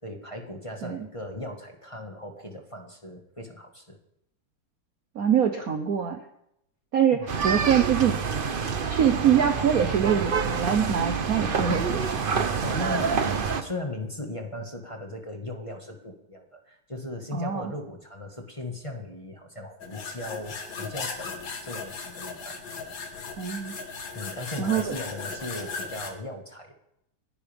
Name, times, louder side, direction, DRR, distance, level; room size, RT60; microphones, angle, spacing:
voice 1, 0.0-4.0 7.1-7.4 12.6-21.3 21.6-22.8 24.1-26.7, left 1 dB, 15° left, 1 dB, 1.5 m, -38 dB
voice 2, 5.1-6.2 6.9-8.2 8.9-12.2 17.3-17.7 23.4-23.7 24.6-24.9, right 8 dB, 55° right, 6 dB, 1.1 m, -24 dB
sound 1, 7.3-13.6, right 5 dB, 85° right, 0.4 m, -27 dB
sound 2, 19.8-26.1, left 4 dB, 60° left, 2.2 m, -37 dB
29.5 x 11.0 x 3.5 m, 0.80 s
omnidirectional pair, 2.4 m